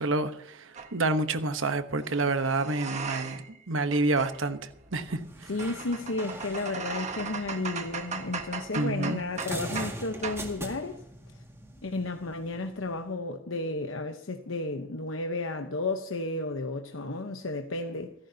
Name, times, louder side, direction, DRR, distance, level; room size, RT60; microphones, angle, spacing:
voice 1, 0.0-4.6 4.9-5.2 8.8-9.2, right 2 dB, 70° right, 1.1 m, -28 dB
sound 1, 0.8-0.9 2.0-3.6 3.8-10.0 10.2-10.5, right 5 dB, 35° right, 1.5 m, -38 dB
sound 2, 5.1-13.1, right 1 dB, 15° right, 2.0 m, -43 dB
voice 2, 5.5-11.0 11.8-18.1, left 2 dB, 75° left, 1.0 m, -33 dB
28.0 x 11.0 x 2.8 m
head